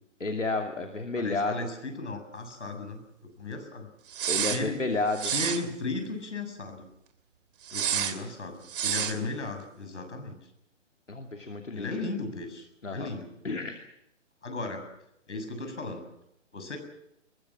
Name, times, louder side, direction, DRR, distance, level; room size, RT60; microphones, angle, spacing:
voice 1, 0.2-1.6 4.3-5.3 11.1-11.9 12.8-13.1 13.4-13.8, left 3 dB, 90° left, 4 dB, 2.7 m, -31 dB
voice 2, 1.2-3.0 3.4-3.9 4.4-4.8 5.2-6.9 7.7-8.6 8.8-10.4 11.7-13.3 14.4-14.8 15.3-16.0 16.5-16.8, left 3 dB, 70° left, 6 dB, 7.4 m, -35 dB
sound 1, 4.1-4.6 5.1-5.6 7.7-8.1 8.7-9.2, right 9 dB, 45° right, 2.7 m, -29 dB
22.5 x 21.0 x 7.6 m, 0.80 s
figure-of-eight pair, 135°, 36 cm